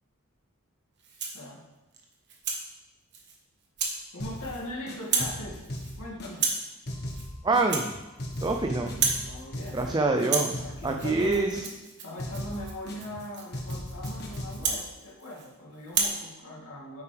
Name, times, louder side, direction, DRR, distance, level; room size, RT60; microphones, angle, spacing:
Rattle (instrument), 1.0-1.5 1.9-2.6 3.1-3.4 3.8-4.0 4.3-4.7 5.0-5.4 5.6-6.0 6.3-6.7 7.1-7.3 7.6-8.6 8.8-9.3 9.6-9.9 10.2-15.5 15.9-16.2, right 5 dB, 55° right, 1.3 m, -32 dB
voice 1, 4.1-5.6 6.0-6.5 9.2-11.5 12.0-17.0, left 1 dB, 85° left, -4 dB, 2.5 m, -40 dB
sound 1, 4.2-4.6 4.9-6.6 6.9-7.9 8.2-9.9 10.2-11.9 12.2-13.2 13.5-14.7, equal, 50° left, 1.4 m, -37 dB
voice 2, 7.4-7.9 8.4-8.9 9.7-10.5 10.8-11.5, right 3 dB, 20° right, 4 dB, 0.5 m, -25 dB
9.2 x 8.4 x 3.4 m, 1.0 s
head